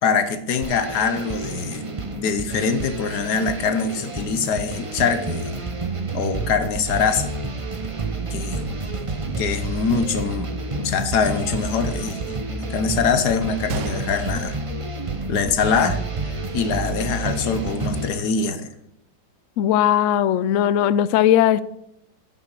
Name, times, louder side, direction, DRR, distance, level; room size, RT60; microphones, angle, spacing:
voice 1, 0.0-1.9 2.1-5.6 6.1-7.3 8.3-8.7 9.4-10.5 10.8-14.6 15.2-18.7, left 5 dB, 65° left, 9 dB, 1.5 m, -23 dB
sound 1, 0.6-18.1, right 3 dB, 30° right, 0.6 m, -29 dB
Gunshot gunfire, 13.7-15.7 16.0-16.1 16.8-17.0, right 8 dB, 75° right, 1.4 m, -35 dB
voice 2, 19.6-21.6, left 11 dB, 85° left, 16 dB, 0.6 m, -18 dB
9.8 x 5.9 x 7.6 m, 0.78 s
omnidirectional pair, 1.9 m